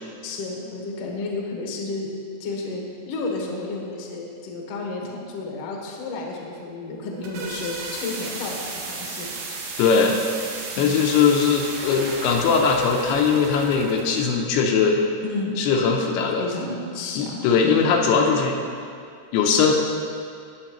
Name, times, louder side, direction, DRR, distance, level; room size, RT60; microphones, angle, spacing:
voice 1, 0.2-2.1 2.4-9.3 10.7-11.0 15.2-15.6 16.4-18.0, left 3 dB, 60° left, -1 dB, 1.7 m, -32 dB
sound 1, 6.9-14.2, right 3 dB, 80° right, 3.3 m, -34 dB
voice 2, 9.8-10.2 10.8-15.0 15.6-16.4 17.2-18.6 19.3-19.7, left 5 dB, 80° left, 1 dB, 2.7 m, -20 dB
19.0 x 6.7 x 3.0 m, 2.3 s
omnidirectional pair, 4.8 m